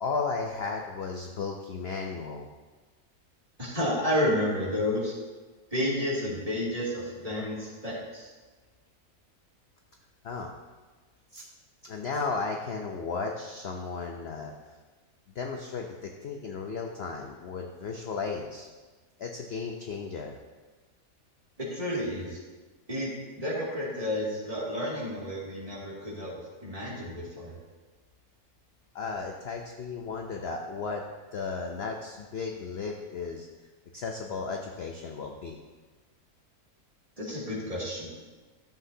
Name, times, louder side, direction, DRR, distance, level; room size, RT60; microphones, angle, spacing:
voice 1, 0.0-2.5 10.2-10.5 11.3-11.5 11.8-14.5 15.4-18.7 19.2-20.4 28.9-31.0 31.3-33.5 33.9-35.6, left 4 dB, 55° left, 2 dB, 0.8 m, -34 dB
voice 2, 3.6-5.1 5.7-8.3 21.6-22.4 22.9-27.6 37.2-38.1, left 1 dB, 25° right, -7 dB, 2.4 m, -31 dB
13.0 x 7.8 x 2.8 m, 1.3 s
omnidirectional pair, 1.6 m